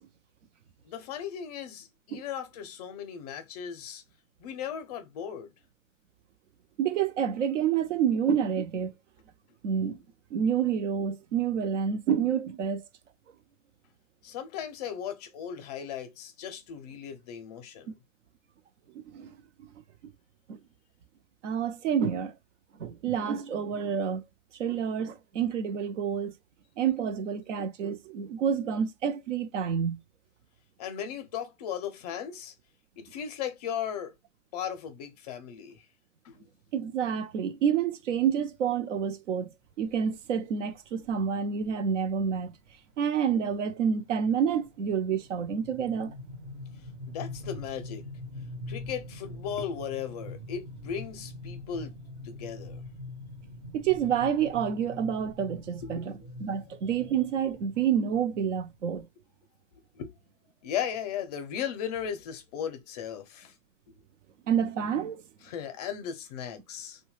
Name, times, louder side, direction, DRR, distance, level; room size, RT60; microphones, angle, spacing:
voice 1, 0.8-4.0 4.4-5.5 14.2-18.0 30.8-32.5 33.0-34.2 34.5-35.8 36.2-36.4 47.1-48.1 48.7-52.0 52.2-52.8 55.8-56.3 58.9-59.0 59.9-60.1 60.6-63.5 63.9-64.0 65.4-67.0, left 8 dB, 30° left, 0.5 m, -37 dB
voice 2, 6.8-8.9 9.6-10.0 10.3-12.8 18.9-19.3 20.5-20.6 21.4-22.3 22.8-24.2 24.6-26.3 26.8-30.0 36.7-39.5 39.8-42.5 43.0-46.1 53.7-56.1 56.4-59.1 64.5-65.2, right 8 dB, 65° right, 0.6 m, -28 dB
sound 1, 39.9-40.2 41.0-41.2 41.6-41.7 42.0-42.3 42.7-59.0, left 2 dB, 25° right, 0.6 m, -43 dB
2.7 x 2.2 x 3.0 m
hypercardioid pair, 135°, 39 cm